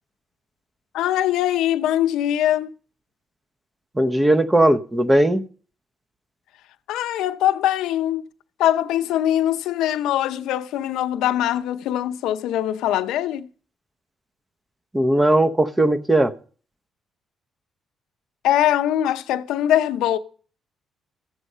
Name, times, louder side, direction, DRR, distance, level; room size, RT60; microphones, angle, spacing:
voice 1, 0.9-2.7 6.9-8.2 8.6-13.5 18.4-20.2, left 12 dB, 90° left, 0.6 m, -22 dB
voice 2, 4.0-5.4 14.9-16.3, right 1 dB, 15° right, 0.8 m, -18 dB
13.5 x 8.0 x 5.5 m
cardioid pair, 90°, 0 cm